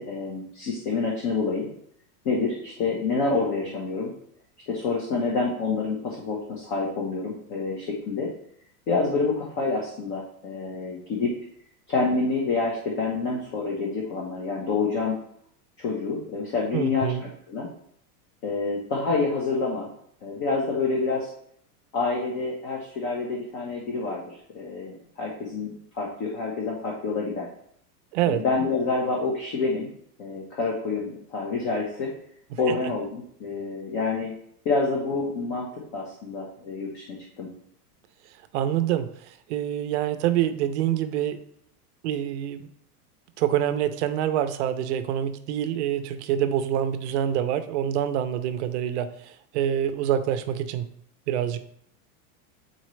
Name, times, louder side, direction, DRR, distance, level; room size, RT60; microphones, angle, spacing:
voice 1, 0.0-1.7 2.2-4.1 4.7-8.3 8.9-11.3 11.9-15.2 15.8-17.7 18.4-19.9 20.2-21.3 21.9-27.5 28.3-29.9 30.2-32.1 32.6-34.3 34.6-35.7 35.9-37.5, left 3 dB, 40° left, -2 dB, 1.1 m, -27 dB
voice 2, 16.7-17.2 28.1-28.4 32.5-32.8 38.5-41.4 42.0-42.7 43.4-50.9 51.3-51.6, right 10 dB, 45° right, 10 dB, 0.5 m, -26 dB
9.0 x 4.0 x 3.1 m, 0.68 s
supercardioid pair, 165°, 48 cm